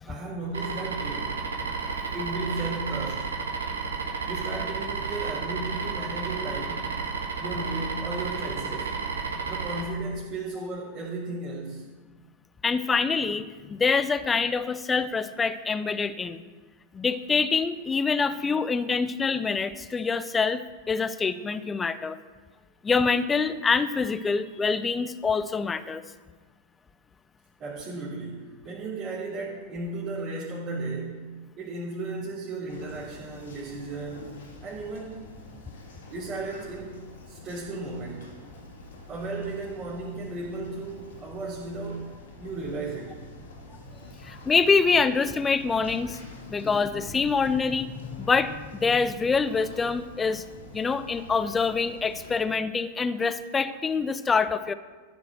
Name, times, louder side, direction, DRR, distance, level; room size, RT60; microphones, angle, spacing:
voice 1, 0.1-1.4 2.1-3.3 4.2-6.9 7.4-9.0 9.5-11.8 27.6-34.3 34.6-35.2 36.1-38.3 39.1-42.1 42.4-43.2, right 2 dB, 35° right, -9 dB, 3.3 m, -35 dB
sound 1, 0.5-9.8, right 5 dB, 70° right, 1.8 m, -32 dB
voice 2, 12.6-16.4 16.9-22.2 22.8-26.0 44.2-46.2 46.5-47.9 48.2-50.4 50.7-54.7, left 5 dB, 15° left, 13 dB, 0.6 m, -25 dB
sound 2, 32.7-52.4, left 2 dB, 65° left, 2.4 m, -46 dB
14.5 x 6.9 x 6.3 m, 1.3 s
figure-of-eight pair, 90°, 0 cm